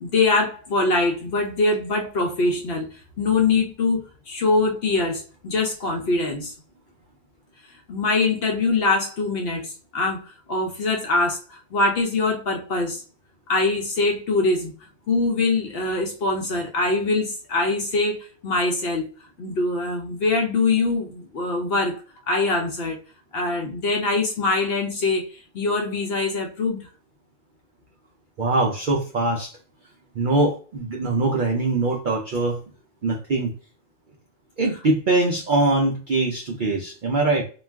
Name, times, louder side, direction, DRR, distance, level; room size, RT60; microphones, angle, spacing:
voice 1, 0.0-6.5 7.9-10.2 10.5-13.0 13.5-14.7 15.1-19.1 19.4-22.0 22.3-23.0 23.3-26.9, left 3 dB, 60° left, 0.7 m, -23 dB
voice 2, 28.4-29.5 30.1-32.6 33.0-33.5 34.6-37.4, right 2 dB, 70° right, 0.4 m, -22 dB
2.4 x 2.3 x 3.2 m
omnidirectional pair, 1.4 m